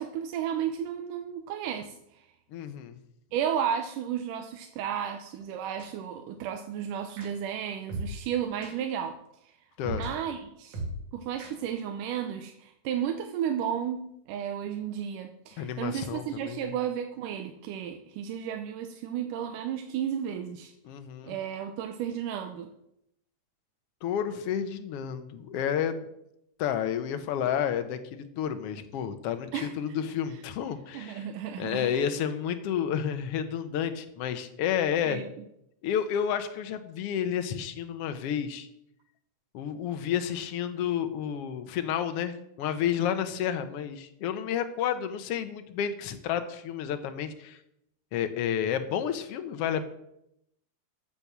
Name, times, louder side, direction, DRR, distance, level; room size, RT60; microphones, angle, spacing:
voice 1, 0.0-1.9 3.3-9.2 9.8-10.8 11.1-20.7 21.2-22.7 29.5-29.7 30.9-31.9 35.1-35.2, right 9 dB, 85° right, 6 dB, 2.3 m, -33 dB
voice 2, 2.5-3.0 9.8-10.0 15.6-16.7 20.8-21.4 24.0-26.0 26.6-31.3 31.6-35.2 35.8-38.7 39.5-47.6 48.1-49.9, left 9 dB, 70° left, 8 dB, 1.5 m, -30 dB
sound 1, 5.8-5.9 7.2-7.3 7.9-8.1 8.6-8.7 9.8-10.1 10.7-11.0 11.4-11.5, right 1 dB, 65° right, 3.6 m, -35 dB
14.0 x 6.9 x 6.1 m, 0.79 s
omnidirectional pair, 3.7 m